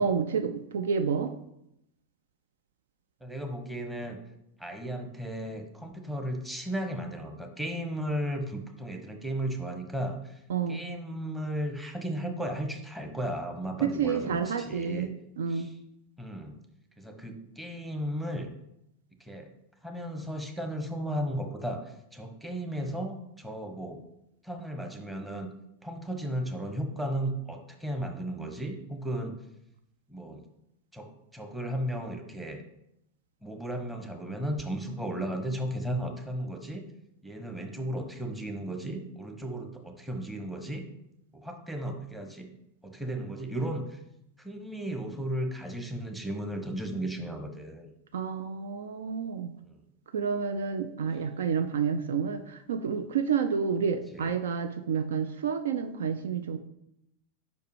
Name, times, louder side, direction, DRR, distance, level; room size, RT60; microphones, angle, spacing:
voice 1, 0.0-1.3 10.5-10.8 13.8-15.1 15.4-15.7 48.1-49.5 50.1-56.6, right 6 dB, 60° right, 9 dB, 0.4 m, -29 dB
voice 2, 3.2-4.2 4.6-10.4 10.7-15.1 15.5-15.7 16.2-16.6 17.0-18.5 19.2-19.5 19.8-24.0 24.4-25.5 25.8-29.4 30.1-30.5 30.9-32.6 33.4-36.8 37.2-40.9 41.3-42.5 42.8-44.0 44.4-47.9 49.6-49.8 54.1-54.3, right 1 dB, 5° right, 3 dB, 1.0 m, -35 dB
5.2 x 4.6 x 4.8 m, 0.81 s
figure-of-eight pair, 90°, 0 cm